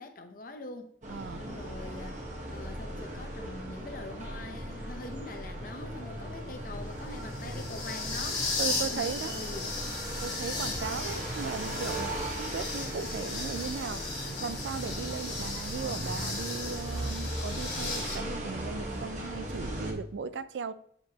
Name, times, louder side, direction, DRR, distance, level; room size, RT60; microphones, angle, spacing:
voice 1, 0.0-0.9 1.3-8.5 8.9-9.8, left 2 dB, 50° left, 0.7 m, -44 dB
sound 1, 1.0-19.9, right 1 dB, 45° right, 1.1 m, -38 dB
voice 2, 1.1-1.5 8.6-9.3 10.2-20.7, right 5 dB, 80° right, 0.4 m, -37 dB
sound 2, 5.0-18.1, left 3 dB, 30° left, 1.7 m, -37 dB
sound 3, 5.4-8.0 8.8-8.9, left 1 dB, 75° left, 1.0 m, -49 dB
7.7 x 4.7 x 2.8 m
head